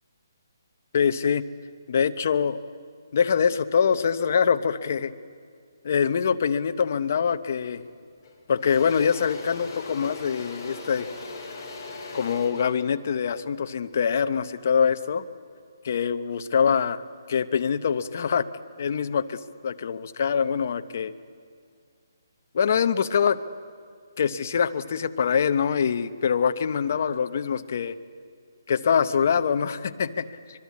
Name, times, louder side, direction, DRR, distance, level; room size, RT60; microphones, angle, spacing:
voice 1, 0.9-1.4 1.9-2.6 3.1-5.1 5.8-7.8 8.5-11.1 12.1-15.2 15.8-17.0 17.3-18.5 18.8-21.1 22.5-23.4 24.2-27.9 28.7-30.2, left 7 dB, 35° left, 10 dB, 0.7 m, -24 dB
Engine / Drill, 7.7-7.9 8.2-14.4, left 3 dB, 15° left, 3.2 m, -40 dB
25.0 x 21.5 x 8.4 m, 2.2 s
hypercardioid pair, 180°, 2 cm